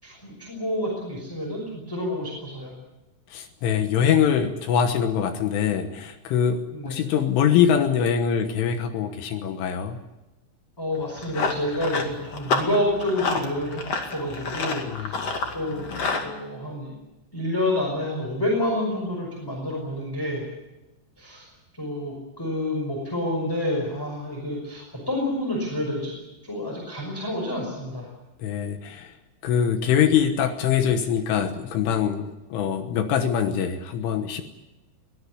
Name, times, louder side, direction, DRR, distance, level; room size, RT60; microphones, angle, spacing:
voice 1, 0.0-2.7 6.7-7.0 10.8-16.9 17.3-20.4 21.2-21.5 21.8-26.1 26.4-28.1, left 1 dB, 5° left, -1 dB, 5.0 m, -29 dB
voice 2, 3.3-10.0 14.9-15.3 28.4-29.1 29.4-34.4, left 8 dB, 75° left, 7 dB, 3.6 m, -23 dB
Run, 10.9-16.3, left 4 dB, 45° left, 2.4 m, -29 dB
22.5 x 17.5 x 9.8 m, 1.0 s
omnidirectional pair, 5.9 m